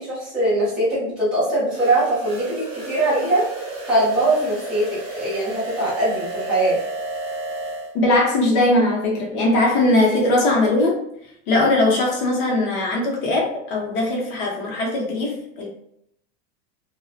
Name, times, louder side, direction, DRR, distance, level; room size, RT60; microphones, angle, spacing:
voice 1, 0.0-3.4 3.8-6.8, right 1 dB, ahead, -11 dB, 0.4 m, -21 dB
sound 1, 1.7-7.9, right 2 dB, 35° right, 1.0 m, -32 dB
voice 2, 7.9-11.0 11.5-15.7, left 2 dB, 45° left, -1 dB, 0.6 m, -20 dB
2.5 x 2.1 x 2.4 m, 0.70 s
supercardioid pair, 180°, 38 cm